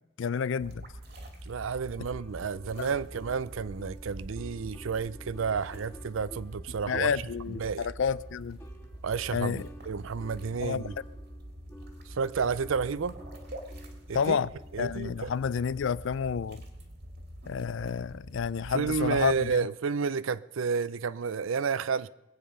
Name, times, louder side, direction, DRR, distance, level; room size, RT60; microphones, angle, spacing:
voice 1, 0.2-0.8 2.8-2.9 6.9-8.6 9.3-9.7 10.6-10.9 14.1-14.5 14.8-16.6 17.5-19.6, left 6 dB, 65° left, 0.4 m, -30 dB
sound 1, 0.6-19.6, equal, 50° right, 2.2 m, -45 dB
voice 2, 1.4-7.1 7.5-7.9 9.0-11.0 12.1-13.2 14.1-14.4 14.7-15.3 18.7-22.1, right 5 dB, 75° right, 0.5 m, -31 dB
sound 2, 2.1-15.0, equal, 10° left, 1.7 m, -53 dB
21.0 x 8.8 x 5.5 m
head